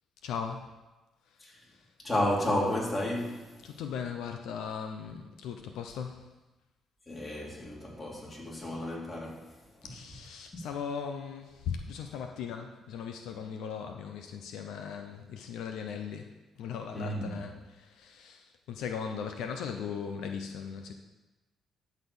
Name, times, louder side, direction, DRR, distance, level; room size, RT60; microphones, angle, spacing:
voice 1, 0.2-0.7 1.7-1.8 3.6-6.2 9.8-16.3 16.6-20.9, left 7 dB, 85° left, 0.7 m, -38 dB
voice 2, 2.0-3.8 7.1-9.6 16.9-17.4, left 1 dB, 25° left, 3.0 m, -32 dB
12.5 x 4.2 x 7.0 m
cardioid pair, 90°, 0 cm